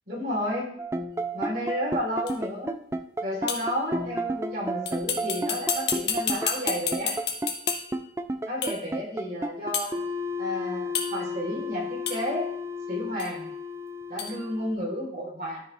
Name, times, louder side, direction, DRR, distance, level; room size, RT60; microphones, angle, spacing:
voice 1, 0.1-0.7 1.3-2.8 3.2-7.2 8.5-10.0 10.4-12.5 12.9-13.4 14.1-15.6, equal, 55° right, -3 dB, 3.7 m, -32 dB
sound 1, 0.8-14.7, equal, 15° right, 0.4 m, -32 dB
sound 2, 2.3-2.4 3.5-3.8 4.9-8.0 8.6-8.9 9.7-10.0 10.9-11.4 12.1-12.3 13.2-13.3 14.2-14.4, left 6 dB, 70° left, 1.2 m, -31 dB
13.0 x 5.0 x 3.4 m, 0.66 s
head